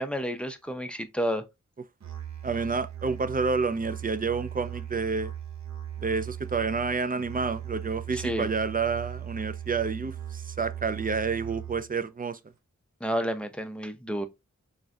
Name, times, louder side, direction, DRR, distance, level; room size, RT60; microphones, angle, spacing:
voice 1, 0.0-1.4 8.1-8.5 13.0-14.3, equal, 5° left, 0.7 m, -30 dB
Musical instrument, 2.0-12.0, right 10 dB, 70° right, 1.0 m, -38 dB
voice 2, 2.4-5.3 6.0-12.4, right 4 dB, 30° right, 0.4 m, -29 dB
3.9 x 3.8 x 2.3 m
wide cardioid pair, 65°, 29 cm